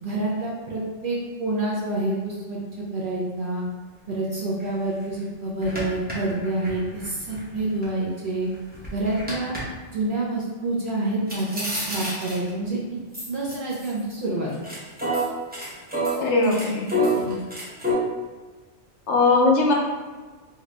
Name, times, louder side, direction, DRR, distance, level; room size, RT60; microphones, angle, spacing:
voice 1, 0.0-2.6 2.9-3.6 4.1-8.5 8.9-9.6 9.9-12.8 13.3-14.5 17.2-17.4, right 2 dB, 55° right, -5 dB, 0.7 m, -27 dB
sound 1, 4.6-4.7 5.1-5.2 5.6-7.9 8.3-9.6 11.3-12.6 13.1-14.2 14.5-17.9, equal, 10° right, 0.5 m, -28 dB
voice 2, 16.2-16.9 19.1-19.7, left 3 dB, 70° left, -1 dB, 0.9 m, -19 dB
2.8 x 2.5 x 3.2 m, 1.3 s
omnidirectional pair, 1.3 m